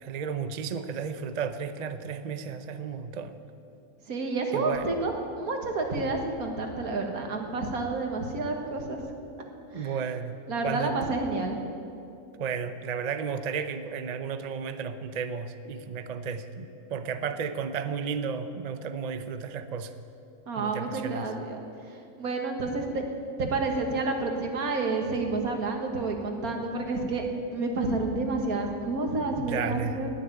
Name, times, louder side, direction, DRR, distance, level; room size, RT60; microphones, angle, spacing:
voice 1, 0.0-3.4 4.5-4.9 9.7-11.0 12.4-19.9 20.6-21.3 29.3-30.0, right 6 dB, 45° right, 10 dB, 0.5 m, -33 dB
voice 2, 4.1-9.0 9.7-9.9 10.5-11.6 20.5-21.6 22.2-23.0 23.4-27.3 27.5-30.1, right 3 dB, 75° right, 3 dB, 2.0 m, -29 dB
19.0 x 6.8 x 9.2 m, 2.6 s
omnidirectional pair, 1.6 m